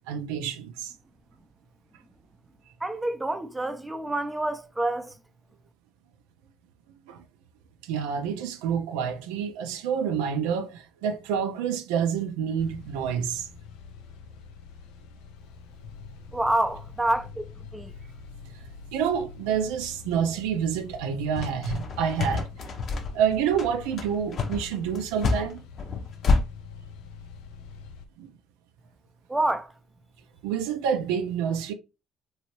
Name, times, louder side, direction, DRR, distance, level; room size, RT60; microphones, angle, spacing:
voice 1, 0.1-0.9 7.1-7.2 7.8-13.5 18.9-22.5 23.1-25.6 28.2-28.3 30.4-31.7, right 7 dB, 85° right, 0.4 m, -28 dB
voice 2, 2.8-5.1 16.3-17.5 17.7-17.9 29.3-29.7, right 1 dB, 15° right, 0.5 m, -27 dB
sound 1, 12.6-28.0, left 5 dB, 80° left, 0.3 m, -45 dB
sound 2, 21.4-26.4, left 4 dB, 55° left, 0.7 m, -27 dB
2.9 x 2.7 x 2.9 m
supercardioid pair, 70°, 0 cm